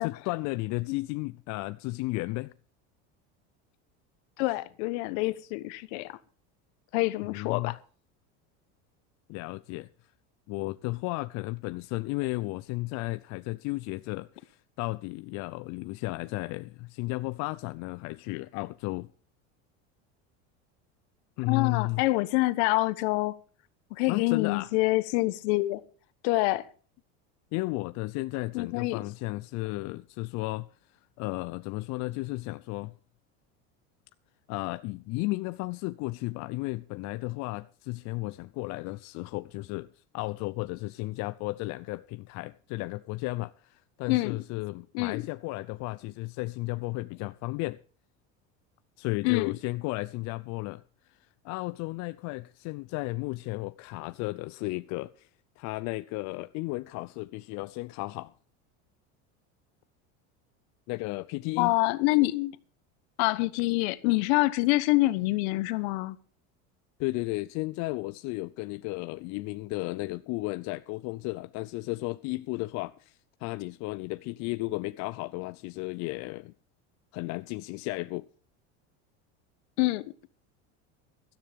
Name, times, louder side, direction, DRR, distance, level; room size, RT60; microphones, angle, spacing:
voice 1, 0.0-2.5 7.2-7.7 9.3-9.9 10.5-19.1 21.4-22.0 24.1-24.7 27.5-30.7 31.2-32.9 34.5-47.8 49.0-50.8 51.1-51.2 51.4-55.3 55.6-58.3 60.9-61.8 67.0-76.5 77.1-78.3, left 22 dB, 55° left, 0.6 m, -34 dB
voice 2, 4.4-6.2 6.9-7.8 21.5-23.4 23.9-25.8 26.2-26.7 28.5-29.0 44.1-44.4 44.9-45.2 49.2-49.5 61.6-62.5 63.2-66.2 79.8-80.0, left 20 dB, 70° left, 1.2 m, -26 dB
17.0 x 13.0 x 3.6 m
supercardioid pair, 130°, 33 cm